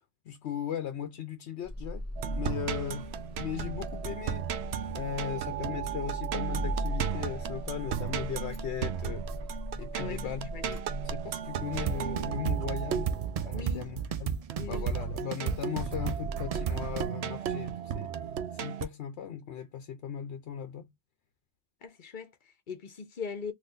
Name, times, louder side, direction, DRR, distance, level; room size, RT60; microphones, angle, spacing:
voice 1, 0.3-2.0 2.4-4.5 4.9-9.2 9.8-18.1 18.6-20.9, left 9 dB, 90° left, 0.9 m, -38 dB
Car / Engine starting, 1.6-11.7, equal, 15° left, 0.7 m, -38 dB
sound 1, 2.2-18.9, right 9 dB, 75° right, 0.8 m, -36 dB
voice 2, 9.9-10.7 13.5-13.9 14.6-14.9 21.8-23.5, left 5 dB, 50° left, 0.9 m, -41 dB
sound 2, 11.7-17.1, right 6 dB, 60° right, 0.4 m, -33 dB
3.6 x 2.7 x 2.5 m
omnidirectional pair, 1.1 m